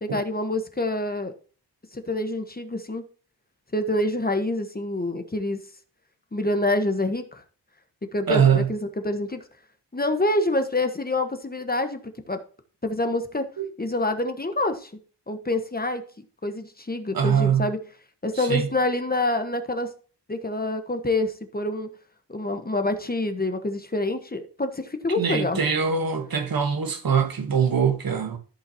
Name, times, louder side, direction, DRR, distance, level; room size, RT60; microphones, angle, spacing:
voice 1, 0.0-1.3 1.9-3.0 3.7-5.6 6.3-7.4 8.1-9.4 9.9-12.0 12.3-12.4 12.8-13.5 13.8-14.9 15.3-16.0 16.4-17.8 18.2-19.9 20.3-21.9 22.3-25.6, left 2 dB, 20° left, 1.2 m, -26 dB
voice 2, 8.3-8.7 13.6-13.7 17.1-17.7 18.3-18.7 25.2-28.4, right 7 dB, 55° right, 1.3 m, -23 dB
14.5 x 5.6 x 2.9 m
cardioid pair, 65°, 43 cm